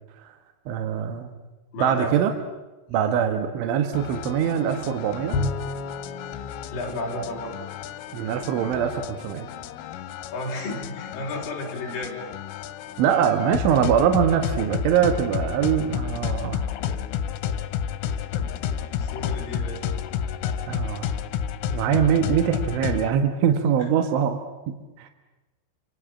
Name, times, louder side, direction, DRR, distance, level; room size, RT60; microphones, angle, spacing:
voice 1, 0.7-1.3 1.8-2.3 2.9-5.4 8.1-9.5 13.0-16.6 20.7-21.1 21.7-24.4 24.7-25.1, right 8 dB, 75° right, 7 dB, 3.9 m, -23 dB
voice 2, 1.7-2.2 2.9-3.2 6.7-7.5 10.3-12.2 18.5-19.9, left 2 dB, 45° left, -1 dB, 6.5 m, -33 dB
sound 1, 3.9-23.1, left 8 dB, 90° left, 3.9 m, -31 dB
Bowed string instrument, 5.3-8.0, left 3 dB, 65° left, 4.7 m, -32 dB
29.5 x 25.5 x 7.5 m, 1.1 s
omnidirectional pair, 5.7 m